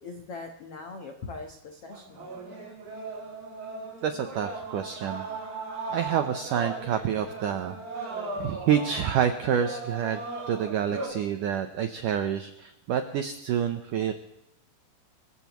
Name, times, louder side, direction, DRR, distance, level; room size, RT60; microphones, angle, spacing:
voice 1, 0.0-2.3, left 3 dB, 70° left, 4 dB, 1.4 m, -41 dB
sound 1, 1.9-11.1, right 3 dB, 55° right, 5.9 m, -37 dB
voice 2, 4.0-5.3 5.9-14.1, right 9 dB, 80° right, 7 dB, 1.9 m, -28 dB
26.0 x 15.5 x 3.1 m, 0.85 s
omnidirectional pair, 4.8 m